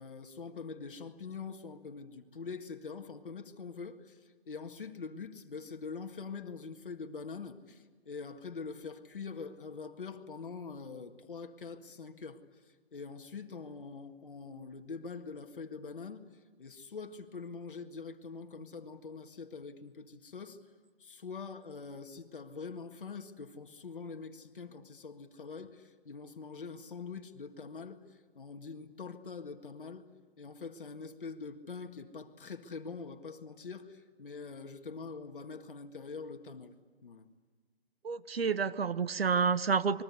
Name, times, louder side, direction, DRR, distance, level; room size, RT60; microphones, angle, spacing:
voice 1, 0.0-16.2 16.6-20.6 21.0-30.1 30.4-36.8 37.0-37.3, left 5 dB, 55° left, 6 dB, 1.9 m, -44 dB
voice 2, 38.0-40.0, right 5 dB, 65° right, 16 dB, 1.0 m, -29 dB
28.5 x 22.0 x 8.3 m, 1.4 s
hypercardioid pair, 175°, 32 cm